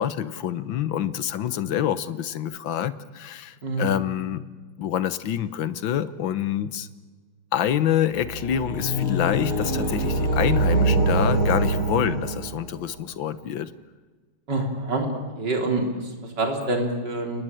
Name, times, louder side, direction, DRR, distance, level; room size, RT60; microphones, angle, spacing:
voice 1, 0.0-4.4 4.8-6.9 7.5-13.7, left 10 dB, 70° left, 14 dB, 1.7 m, -26 dB
voice 2, 3.6-3.9 14.5-15.1 15.4-17.4, right 2 dB, 55° right, 3 dB, 4.2 m, -26 dB
sound 1, 8.1-12.8, right 2 dB, 85° left, 7.4 m, -24 dB
29.5 x 19.5 x 9.1 m, 1.4 s
omnidirectional pair, 2.3 m